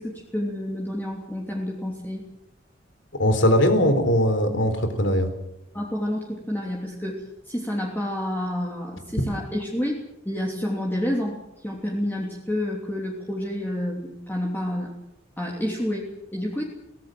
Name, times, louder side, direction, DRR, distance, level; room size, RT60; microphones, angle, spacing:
voice 1, 0.0-2.2 5.7-11.4 11.6-15.0 15.4-16.6, left 1 dB, 10° left, -2 dB, 3.1 m, -29 dB
voice 2, 3.2-5.3, equal, 70° left, 8 dB, 3.9 m, -20 dB
23.0 x 18.5 x 7.8 m, 0.86 s
head